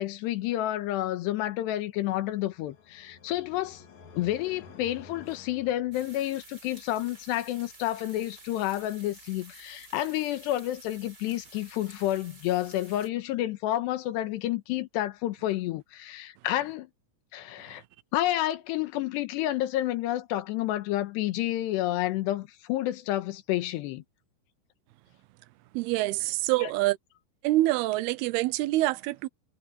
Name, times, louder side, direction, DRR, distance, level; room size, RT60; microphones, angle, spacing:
voice 1, 0.0-3.8 4.2-16.9 17.3-17.8 18.1-24.0 26.6-26.7, left 14 dB, 85° left, 3.3 m, -30 dB
sound 1, 2.1-6.4, left 5 dB, 50° left, 2.9 m, -51 dB
sound 2, 5.9-13.1, right 2 dB, 25° right, 5.9 m, -51 dB
voice 2, 25.7-27.0 27.4-29.3, right 17 dB, 80° right, 2.4 m, -26 dB
omnidirectional pair, 4.9 m